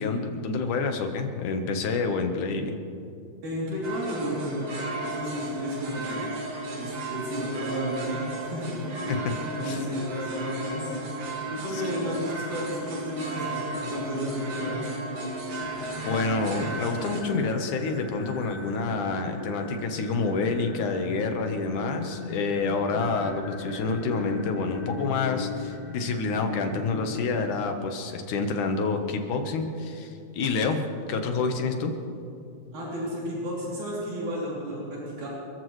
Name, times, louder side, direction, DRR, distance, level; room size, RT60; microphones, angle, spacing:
voice 1, 0.0-2.8 9.1-9.3 9.6-9.8 11.5-11.8 16.1-30.8 31.1-31.9, left 4 dB, 85° left, 5 dB, 2.7 m, -28 dB
voice 2, 3.4-4.7 5.1-6.3 6.7-8.8 9.3-11.0 11.5-14.9 32.7-35.3, equal, 80° right, -7 dB, 4.8 m, -32 dB
sound 1, 3.8-17.2, right 1 dB, 55° right, 3.0 m, -34 dB
sound 2, 15.6-27.6, left 4 dB, 35° left, 2.0 m, -38 dB
27.5 x 14.5 x 3.2 m, 2.5 s
omnidirectional pair, 3.5 m